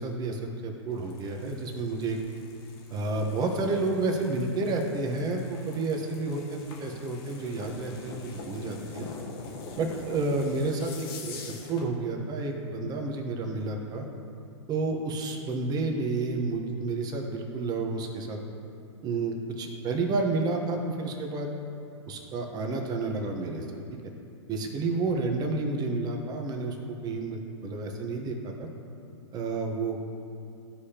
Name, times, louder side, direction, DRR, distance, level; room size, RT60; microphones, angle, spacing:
voice 1, 0.0-2.2 2.9-9.1 9.8-14.1 14.7-18.4 19.0-21.5 22.1-23.8 24.5-28.7 29.3-30.0, right 3 dB, 25° right, 3 dB, 1.1 m, -30 dB
sound 1, 0.9-11.9, left 4 dB, 50° left, 1.3 m, -44 dB
14.0 x 4.8 x 2.9 m, 2.5 s
hypercardioid pair, 115°, 16 cm